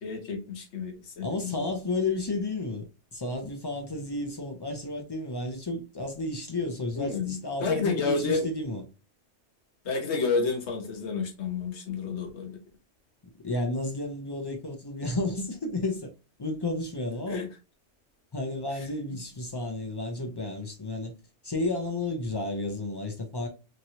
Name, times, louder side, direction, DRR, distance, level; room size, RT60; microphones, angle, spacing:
voice 1, 0.0-1.7 7.0-8.5 9.8-12.6 17.3-17.5, left 4 dB, 70° left, 1.1 m, -30 dB
voice 2, 1.2-8.8 13.4-16.1 16.4-17.4 18.3-21.1 21.4-23.5, left 2 dB, 40° left, 0.3 m, -32 dB
3.0 x 2.8 x 2.6 m
omnidirectional pair, 1.2 m